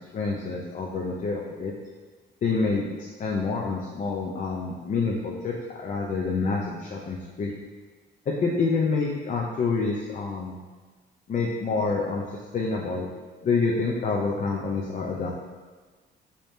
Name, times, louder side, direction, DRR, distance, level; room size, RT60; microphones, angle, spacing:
voice 1, 0.1-1.7 2.4-7.5 8.3-10.6 11.3-12.2 12.5-13.1 13.4-15.3, left 4 dB, 40° left, -1 dB, 0.4 m, -27 dB
3.3 x 2.8 x 3.1 m, 1.4 s
cardioid pair, 90°, 20 cm